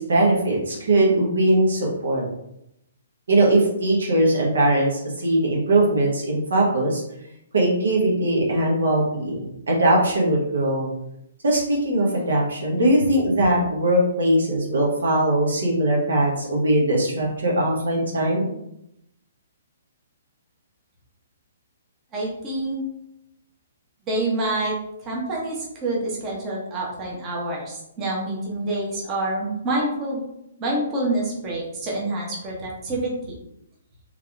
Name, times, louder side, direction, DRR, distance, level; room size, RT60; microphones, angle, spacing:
voice 1, 0.0-2.2 3.3-7.0 7.5-10.9 11.4-18.5, right 1 dB, 70° right, -3 dB, 1.1 m, -20 dB
voice 2, 22.1-22.8 24.1-24.7 25.0-30.2 30.6-33.1, right 2 dB, 25° right, -4 dB, 1.0 m, -27 dB
3.3 x 3.2 x 2.5 m, 0.81 s
figure-of-eight pair, 125°, 0 cm